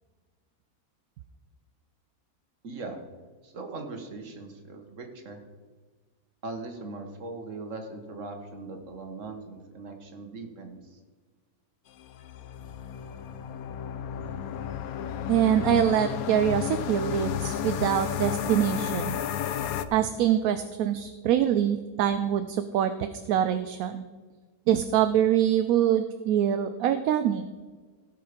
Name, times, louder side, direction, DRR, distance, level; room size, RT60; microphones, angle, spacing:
voice 1, 2.6-3.0 3.4-5.4 6.4-11.0, right 3 dB, 55° right, 4 dB, 1.7 m, -40 dB
sound 1, 12.0-19.9, left 9 dB, 75° left, 1.1 m, -32 dB
voice 2, 15.3-19.2 19.9-24.0 24.7-27.5, right 10 dB, 70° right, 10 dB, 1.0 m, -24 dB
16.5 x 5.6 x 5.1 m, 1.4 s
omnidirectional pair, 1.7 m